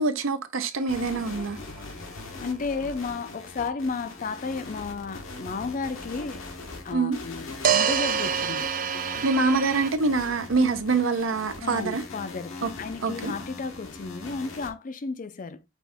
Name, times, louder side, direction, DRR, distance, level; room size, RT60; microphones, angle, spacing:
voice 1, 0.0-1.6 6.9-7.2 9.2-12.0 12.6-12.7 13.0-13.3, right 3 dB, 75° right, 0.7 m, -25 dB
sound 1, 0.7-0.8 7.6-9.9, right 8 dB, 45° right, 0.4 m, -26 dB
sound 2, 0.9-14.7, left 3 dB, 80° left, 1.1 m, -41 dB
voice 2, 2.4-6.5 6.8-8.7 10.6-10.7 11.6-15.6, left 4 dB, 40° left, 0.4 m, -33 dB
6.0 x 2.6 x 3.5 m
head